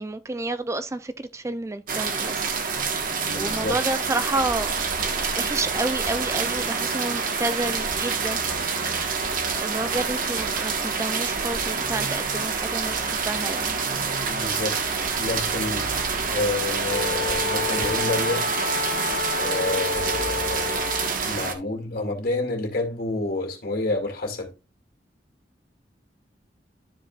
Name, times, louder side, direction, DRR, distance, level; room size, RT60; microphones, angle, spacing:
voice 1, 0.0-2.5 3.3-4.9 5.3-8.4 9.5-13.8, right 2 dB, 15° right, 0.4 m, -30 dB
sound 1, 1.9-21.5, right 5 dB, 50° right, 1.3 m, -27 dB
voice 2, 3.2-3.8 14.2-14.8 15.2-15.9 16.3-18.5 19.4-20.9 21.2-24.5, left 2 dB, 55° left, 2.3 m, -29 dB
Wind instrument woodwind instrument, 16.9-21.2, left 5 dB, 75° left, 1.2 m, -30 dB
12.0 x 5.0 x 2.4 m
head